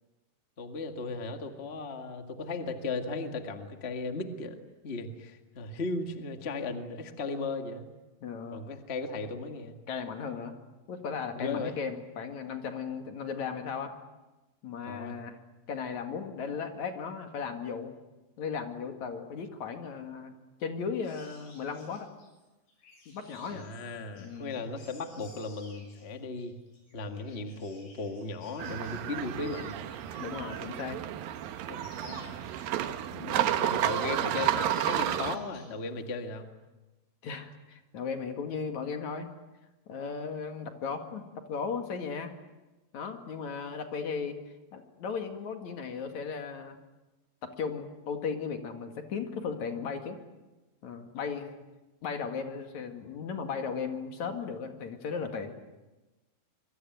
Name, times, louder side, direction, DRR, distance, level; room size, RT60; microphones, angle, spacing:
voice 1, 0.6-4.5 4.8-7.9 8.5-9.8 11.4-11.8 14.8-15.1 23.5-26.6 26.9-29.7 31.7-32.4 33.6-36.5, left 3 dB, 70° left, 6 dB, 0.6 m, -36 dB
voice 2, 8.2-8.6 9.9-10.5 10.9-13.9 14.6-15.4 15.7-17.9 18.4-20.3 20.6-22.1 23.1-23.6 24.2-24.6 30.2-31.0 33.1-33.5 37.2-39.3 39.9-42.3 42.9-44.4 44.7-46.8 47.4-50.2 50.8-51.6 52.0-55.5, left 6 dB, 50° left, 6 dB, 3.0 m, -36 dB
sound 1, 21.0-30.8 31.2-33.1 33.5-34.2 34.5-35.8 36.0-36.3, left 2 dB, 90° left, 8.8 m, -56 dB
sound 2, 28.6-35.4, right 12 dB, 70° right, 2.6 m, -31 dB
25.5 x 23.5 x 9.4 m, 1.1 s
omnidirectional pair, 4.8 m